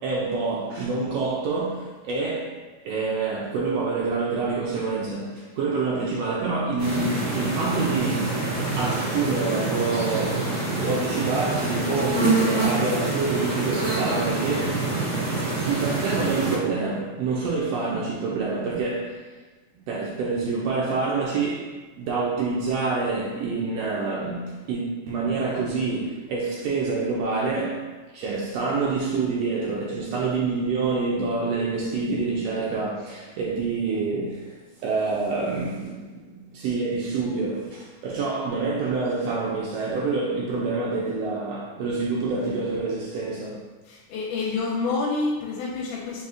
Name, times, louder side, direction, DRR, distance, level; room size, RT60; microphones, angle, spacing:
voice 1, 0.0-8.4 8.7-14.9 15.5-19.2 19.9-43.6, right 4 dB, 85° right, 1.4 m, -27 dB
sound 1, 6.8-16.6, right 2 dB, 45° right, 1.0 m, -26 dB
voice 2, 43.9-46.2, left 3 dB, 85° left, 2.1 m, -28 dB
4.1 x 4.0 x 2.4 m
omnidirectional pair, 3.5 m